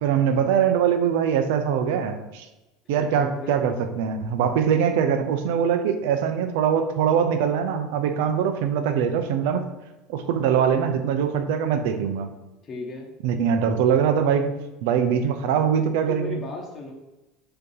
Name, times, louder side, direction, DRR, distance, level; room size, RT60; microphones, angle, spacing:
voice 1, 0.0-2.5 2.9-9.7 10.1-12.3 13.2-16.4, right 7 dB, 80° right, 8 dB, 0.7 m, -22 dB
voice 2, 2.9-3.6 12.6-13.1 16.1-16.9, left 3 dB, 30° left, 0 dB, 1.0 m, -35 dB
6.8 x 3.0 x 5.4 m, 1.0 s
supercardioid pair, 140°, 0 cm